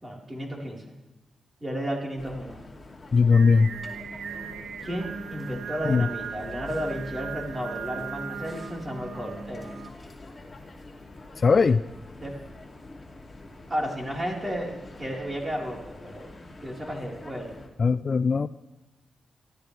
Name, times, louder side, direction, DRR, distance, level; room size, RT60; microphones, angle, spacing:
voice 1, 0.0-0.8 1.6-2.6 4.8-9.7 12.2-12.3 13.7-14.7 15.0-17.6, equal, 20° right, -2 dB, 4.4 m, -33 dB
sound 1, 2.2-17.7, left 2 dB, 25° left, 2.7 m, -45 dB
voice 2, 3.1-3.7 5.8-6.1 11.4-11.8 17.8-18.5, left 5 dB, 50° left, 14 dB, 0.4 m, -19 dB
Singing, 3.3-9.9, right 6 dB, 80° right, 0.8 m, -38 dB
25.0 x 14.0 x 3.4 m, 1.0 s
cardioid pair, 70°, 0 cm